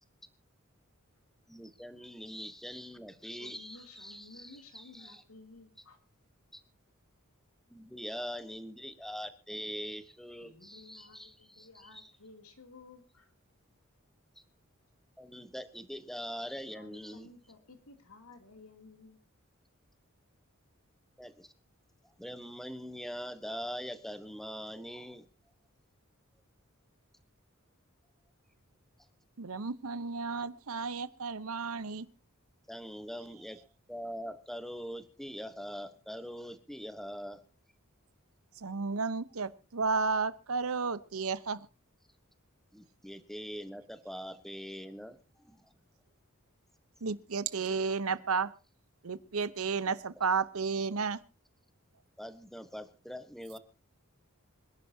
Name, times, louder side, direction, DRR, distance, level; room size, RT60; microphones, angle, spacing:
voice 1, 1.5-5.2 6.5-6.6 7.7-12.1 15.2-17.3 21.2-21.5 22.2-25.3 32.7-37.4 42.7-45.7 49.9-50.0 52.2-53.6, equal, ahead, 10 dB, 1.1 m, -43 dB
voice 2, 3.4-6.0 10.4-13.3 16.6-19.2, left 3 dB, 85° left, 5 dB, 2.9 m, -55 dB
voice 3, 29.4-32.1 38.6-41.6 47.0-48.5 49.0-51.2, right 5 dB, 80° right, 15 dB, 0.9 m, -32 dB
26.0 x 11.5 x 2.8 m, 0.32 s
head